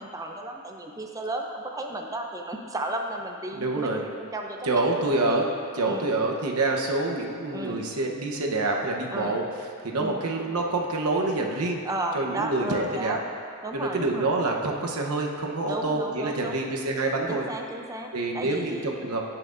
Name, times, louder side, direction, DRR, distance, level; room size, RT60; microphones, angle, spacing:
voice 1, 0.0-5.4 5.9-6.1 7.5-7.8 9.1-9.4 10.0-10.2 11.8-13.2 13.6-14.3 15.7-16.6 17.3-19.1, right 1 dB, 15° right, 2 dB, 0.5 m, -34 dB
voice 2, 3.5-4.0 4.6-5.5 5.7-9.4 9.8-11.8 12.1-13.2 13.7-17.4 18.1-19.2, right 2 dB, 90° right, 0 dB, 0.9 m, -27 dB
16.0 x 5.8 x 2.6 m, 2.3 s
head